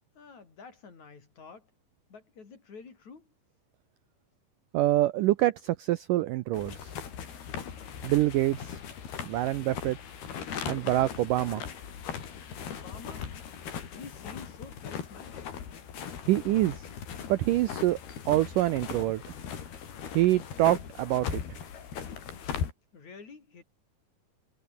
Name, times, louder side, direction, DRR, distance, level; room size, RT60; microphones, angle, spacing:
voice 1, 0.2-1.7 2.1-3.3 12.7-13.3 13.9-15.6 22.9-23.6, left 5 dB, 45° left, 5.4 m, -49 dB
voice 2, 4.7-6.9 8.0-8.8 9.2-10.0 10.7-11.6 16.3-16.8 17.3-18.0 18.3-19.2 20.2-21.4, right 15 dB, 75° right, 2.0 m, -26 dB
sound 1, 6.5-22.7, left 7 dB, 75° left, 5.4 m, -39 dB
omnidirectional pair, 4.6 m